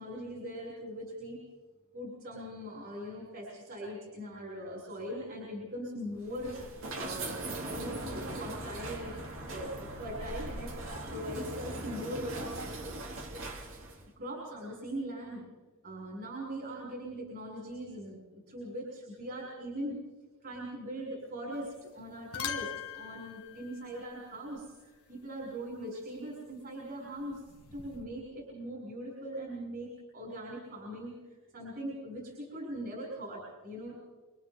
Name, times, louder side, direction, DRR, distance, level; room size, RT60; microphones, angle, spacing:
voice 1, 0.0-1.4 1.9-6.6 6.9-7.4 7.6-9.1 9.5-10.7 11.1-12.3 14.2-15.5 15.8-20.0 20.4-27.4 27.7-34.0, equal, 45° right, -4 dB, 6.7 m, -41 dB
sound 1, 6.2-14.0, right 2 dB, 60° right, 3.3 m, -39 dB
sound 2, 21.5-21.9 22.2-24.7 27.2-28.1, left 8 dB, 90° left, 1.7 m, -42 dB
28.5 x 25.5 x 3.8 m, 1.3 s
head